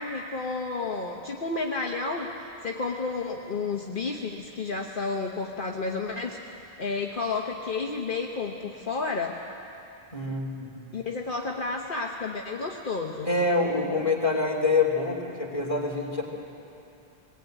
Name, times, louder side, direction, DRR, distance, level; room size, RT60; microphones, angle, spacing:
voice 1, 0.0-6.4 6.8-9.4 10.9-13.3, left 4 dB, 55° left, 1 dB, 1.3 m, -31 dB
voice 2, 10.1-10.8 13.3-16.2, left 3 dB, 30° left, -1 dB, 3.0 m, -26 dB
21.0 x 19.0 x 9.1 m, 2.8 s
omnidirectional pair, 1.1 m